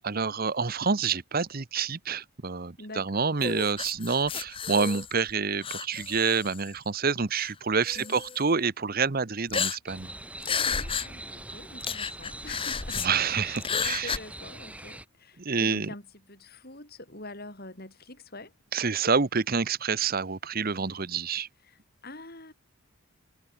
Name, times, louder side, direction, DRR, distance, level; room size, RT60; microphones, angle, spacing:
voice 1, 0.0-10.1 13.0-14.1 15.4-15.9 18.7-21.5, right 5 dB, 40° right, 0.9 m, -28 dB
voice 2, 2.8-3.3 8.0-8.2 10.6-13.5 13.8-18.5 21.6-22.5, left 2 dB, 45° left, 7.5 m, -45 dB
sound 1, 3.4-5.3 5.6-6.7 7.3-7.5 7.9-8.4 9.5-10.1 10.4-11.1 11.4-11.5 11.8-13.1 13.6-14.2, left 6 dB, 25° left, 1.1 m, -32 dB
sound 2, 9.9-15.1, right 1 dB, 5° right, 4.2 m, -43 dB
head